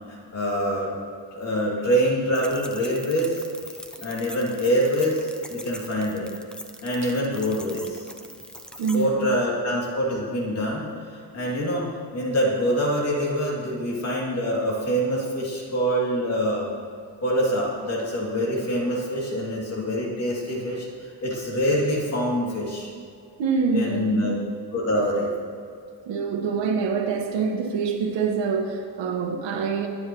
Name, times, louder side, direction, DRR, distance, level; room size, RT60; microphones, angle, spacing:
voice 1, 0.1-0.9 1.3-3.4 4.0-6.3 6.8-8.1 8.9-10.9 11.1-16.7 17.2-20.9 21.2-22.9 23.7-24.3 24.7-25.3, equal, 35° left, -3 dB, 2.8 m, -25 dB
sound 1, 2.3-9.1, equal, ahead, 0.5 m, -42 dB
voice 2, 8.8-9.4 20.5-20.8 23.4-24.4 26.0-29.9, right 5 dB, 80° right, 3 dB, 1.7 m, -26 dB
22.0 x 9.3 x 3.1 m, 2.3 s
cardioid pair, 180°, 43 cm